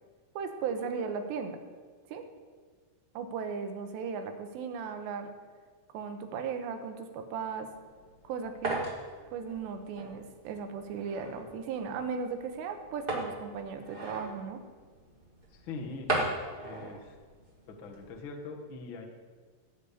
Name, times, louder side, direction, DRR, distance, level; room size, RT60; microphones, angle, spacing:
voice 1, 0.4-1.6 2.1-2.3 3.1-5.3 5.9-7.7 8.2-8.8 9.3-14.6, right 6 dB, 85° right, 6 dB, 3.3 m, -36 dB
sound 1, 7.7-18.2, right 2 dB, 25° right, 1.1 m, -39 dB
voice 2, 15.5-17.1 17.7-19.1, left 3 dB, 75° left, 1 dB, 1.1 m, -43 dB
16.0 x 5.6 x 8.4 m, 1.5 s
omnidirectional pair, 4.9 m